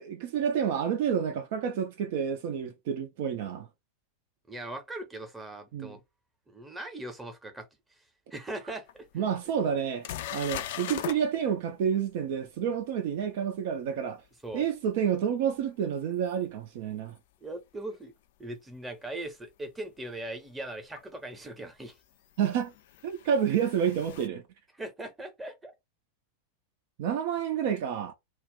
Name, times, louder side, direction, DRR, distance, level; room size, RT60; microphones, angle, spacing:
voice 1, 0.0-3.7 5.7-6.0 9.1-10.1 10.3-14.2 14.5-17.2 22.4-22.7 23.0-24.4 27.0-28.1, right 8 dB, 50° right, 0.4 m, -29 dB
voice 2, 4.5-6.0 6.5-7.7 8.3-9.3 14.4-14.7 17.4-18.1 18.4-22.0 24.7-25.7, right 1 dB, 10° right, 0.7 m, -40 dB
sound 1, 8.9-9.0 9.5-9.6 10.0-11.2 16.3-16.4 19.2-19.3 21.0-21.1 22.4-24.3, left 11 dB, 55° left, 0.3 m, -39 dB
2.4 x 2.0 x 3.6 m
figure-of-eight pair, 90°, 0 cm